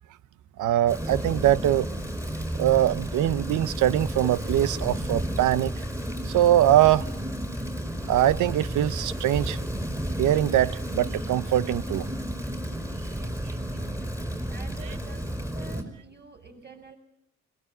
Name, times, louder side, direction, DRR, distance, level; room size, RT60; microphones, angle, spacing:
voice 1, 0.6-1.9 2.6-5.8 6.2-7.1 8.1-9.6 10.2-12.1, right 12 dB, 80° right, 0.9 m, -22 dB
Rain, 0.9-15.8, equal, 10° right, 5.2 m, -32 dB
voice 2, 13.0-14.1 14.5-17.0, right 2 dB, 35° right, 7.9 m, -48 dB
22.0 x 21.0 x 9.0 m
cardioid pair, 90°, 30 cm